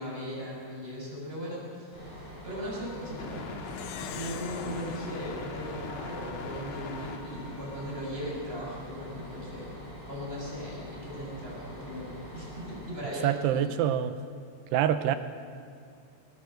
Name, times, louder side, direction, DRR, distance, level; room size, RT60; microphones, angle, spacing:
voice 1, 0.0-3.5 4.0-9.7 10.1-13.6, equal, 10° right, -5 dB, 6.5 m, -38 dB
Bus, 1.9-12.9, equal, 30° left, 8.0 m, -44 dB
sound 1, 2.8-8.1, left 4 dB, 60° left, 1.9 m, -42 dB
Plucked string instrument, 3.7-6.5, left 11 dB, 80° left, 3.2 m, -45 dB
voice 2, 13.2-14.2 14.7-15.2, right 10 dB, 80° right, 11 dB, 2.6 m, -25 dB
20.0 x 19.5 x 7.8 m, 2.4 s
omnidirectional pair, 5.3 m